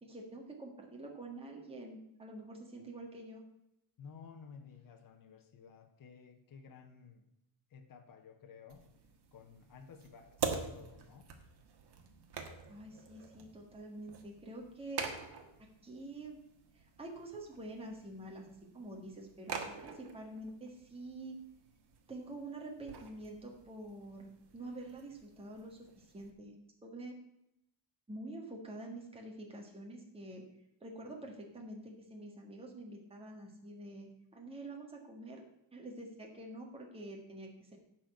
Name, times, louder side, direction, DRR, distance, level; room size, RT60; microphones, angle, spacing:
voice 1, 0.0-3.4 12.4-15.1 15.6-16.4 16.7-21.4 22.1-26.6 26.8-27.1 28.1-30.4 30.8-35.4 35.7-37.8, right 1 dB, 10° right, 0 dB, 1.6 m, -47 dB
voice 2, 4.0-7.3 7.7-8.8 9.3-11.3, left 6 dB, 45° left, 4 dB, 1.2 m, -54 dB
sound 1, 8.7-26.3, right 6 dB, 55° right, 1.6 m, -46 dB
11.0 x 4.5 x 7.9 m, 0.82 s
cardioid pair, 155°, 46 cm